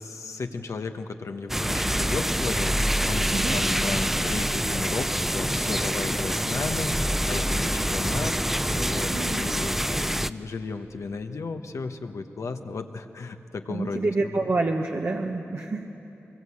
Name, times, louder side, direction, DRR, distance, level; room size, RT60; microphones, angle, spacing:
voice 1, 0.0-14.5, left 4 dB, 85° left, 6 dB, 1.1 m, -35 dB
sound 1, 1.5-10.3, equal, 5° right, 0.5 m, -26 dB
voice 2, 13.7-15.8, right 3 dB, 65° right, 0 dB, 1.2 m, -27 dB
22.5 x 20.5 x 8.5 m, 3.0 s
cardioid pair, 55°, 5 cm